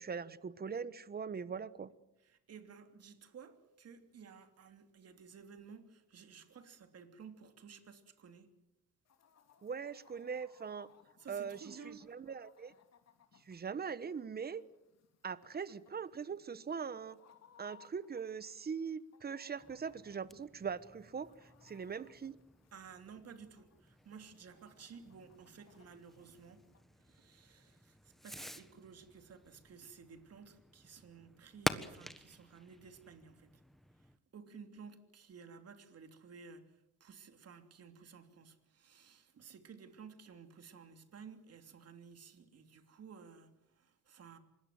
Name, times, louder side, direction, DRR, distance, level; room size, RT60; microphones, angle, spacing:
voice 1, 0.0-1.9 9.6-10.9 11.3-12.7 13.5-14.6 15.2-17.2 17.6-22.4, right 6 dB, 30° right, 1.2 m, -41 dB
voice 2, 2.2-8.5 11.2-12.0 22.7-26.6 27.0-33.5 34.3-36.6 37.0-44.4, right 6 dB, 55° right, 3.2 m, -55 dB
Chicken rooster, 9.1-26.8, left 7 dB, 60° left, 3.2 m, -67 dB
Fireworks, 19.6-34.2, equal, ahead, 1.4 m, -48 dB
25.0 x 20.5 x 7.7 m
cardioid pair, 90°, 30 cm